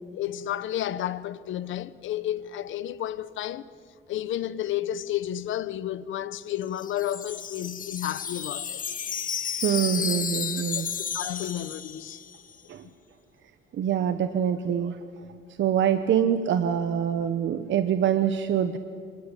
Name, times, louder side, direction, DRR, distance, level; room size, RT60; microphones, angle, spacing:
voice 1, 0.1-3.6 4.1-8.8 9.9-10.1 10.7-10.8 11.1-12.2 12.8-12.9, left 12 dB, 75° left, 1.0 m, -31 dB
Wind chime, 6.5-12.5, left 7 dB, 45° left, 1.0 m, -33 dB
voice 2, 9.6-10.9 12.7-12.9 13.7-15.2 15.6-18.8, right 9 dB, 70° right, 1.2 m, -25 dB
25.5 x 22.0 x 9.9 m
cardioid pair, 90°, 20 cm